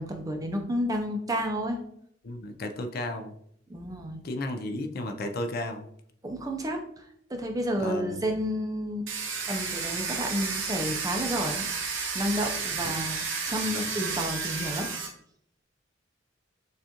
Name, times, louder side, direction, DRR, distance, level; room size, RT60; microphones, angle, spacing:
voice 1, 0.0-1.8 3.7-4.2 6.2-9.1 9.5-14.9, equal, 20° right, 3 dB, 0.5 m, -31 dB
voice 2, 2.2-3.4 4.2-5.9 7.8-8.2 13.6-13.9, left 1 dB, 50° left, 7 dB, 0.4 m, -33 dB
Domestic sounds home sounds, 9.1-15.1, right 5 dB, 80° right, 0.9 m, -32 dB
6.7 x 2.5 x 2.8 m, 0.70 s
head